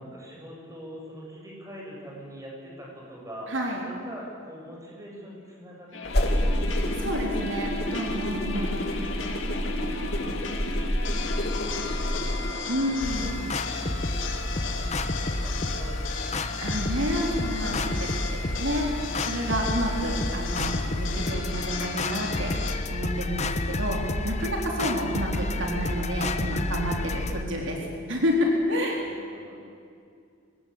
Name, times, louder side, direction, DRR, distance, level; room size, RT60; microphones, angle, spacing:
voice 1, 0.0-3.6 3.8-7.1 8.5-13.4 13.8-15.0 15.2-16.2 27.1-27.8 28.9-29.6, equal, 15° right, -2 dB, 7.2 m, -44 dB
voice 2, 3.5-3.8 6.8-8.8 12.7-13.3 16.6-29.0, equal, 70° right, 0 dB, 4.0 m, -29 dB
sound 1, 5.9-22.8, left 5 dB, 80° left, 2.7 m, -36 dB
sound 2, 6.1-12.5, equal, 55° left, 2.9 m, -28 dB
sound 3, 13.0-27.4, left 2 dB, 35° left, 1.2 m, -30 dB
23.5 x 19.5 x 8.8 m, 2.3 s
head